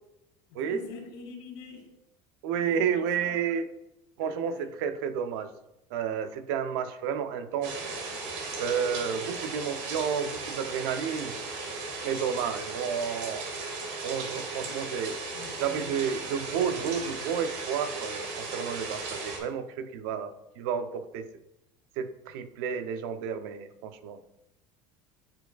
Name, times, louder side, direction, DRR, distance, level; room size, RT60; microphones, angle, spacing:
voice 1, 0.5-1.9 2.5-3.4 4.2-4.7 14.3-14.9 15.3-15.9 16.9-17.0, left 5 dB, 90° left, 2 dB, 1.9 m, -46 dB
voice 2, 2.4-3.7 4.2-5.5 5.9-7.8 8.2-11.4 12.0-13.5 14.0-15.2 15.6-21.3 22.0-24.2, right 7 dB, 85° right, 10 dB, 0.6 m, -31 dB
sound 1, 7.6-19.4, right 3 dB, 70° right, 1.7 m, -36 dB
10.5 x 4.6 x 2.3 m, 0.90 s
cardioid pair, 135°, 12 cm